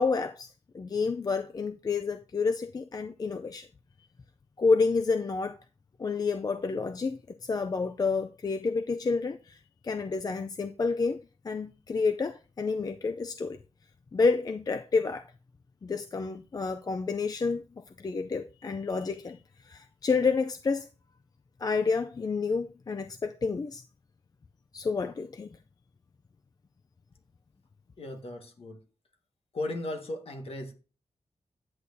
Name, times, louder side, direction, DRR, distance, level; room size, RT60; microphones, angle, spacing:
voice 1, 0.0-3.7 4.6-5.6 6.0-13.6 14.1-15.3 15.8-17.6 18.0-20.9 21.6-23.8 24.7-25.6, left 4 dB, 35° left, 0.4 m, -29 dB
voice 2, 28.0-28.8 29.5-30.7, left 1 dB, 60° left, 1.6 m, -36 dB
9.5 x 8.3 x 2.7 m
wide cardioid pair, 140°, 11 cm